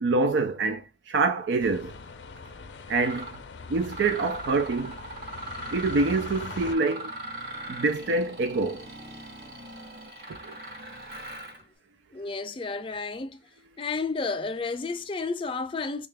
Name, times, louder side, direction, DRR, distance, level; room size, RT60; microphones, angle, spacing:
voice 1, 0.0-2.0 2.9-3.4 3.7-5.0 5.7-7.1 7.7-8.9 10.3-10.5, right 3 dB, 85° right, 0.4 m, -26 dB
sound 1, 1.6-6.7, left 4 dB, 85° left, 0.5 m, -43 dB
Mechanisms, 2.4-2.5 3.0-3.4 3.8-11.6, right 1 dB, 65° right, 1.3 m, -40 dB
voice 2, 12.1-13.4 13.8-16.1, left 4 dB, 30° left, 0.4 m, -31 dB
3.7 x 2.4 x 3.3 m
head